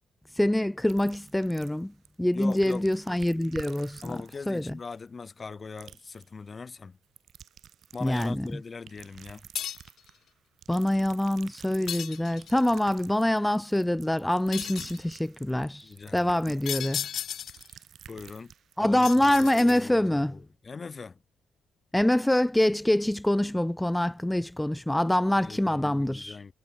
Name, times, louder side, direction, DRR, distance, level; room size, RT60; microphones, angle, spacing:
voice 1, 0.4-1.9 2.2-4.0 4.5-4.6 8.0-8.5 10.7-15.9 16.1-17.1 18.8-20.4 21.9-26.4, left 1 dB, 5° left, 0.7 m, -25 dB
sound 1, 0.9-2.1 2.3-5.5 5.8-6.3 7.0-8.5 8.9-10.2 10.6-19.8, right 9 dB, 60° right, 6.3 m, -50 dB
voice 2, 2.3-2.9 4.0-7.0 7.9-9.4 15.8-16.6 18.1-18.5 18.8-21.2 25.4-26.5, left 4 dB, 35° left, 2.9 m, -41 dB
sound 2, 9.5-10.0 11.9-12.6 14.5-15.0 16.6-17.7 19.0-20.1, left 9 dB, 65° left, 1.3 m, -35 dB
cardioid pair, 90°, 0 cm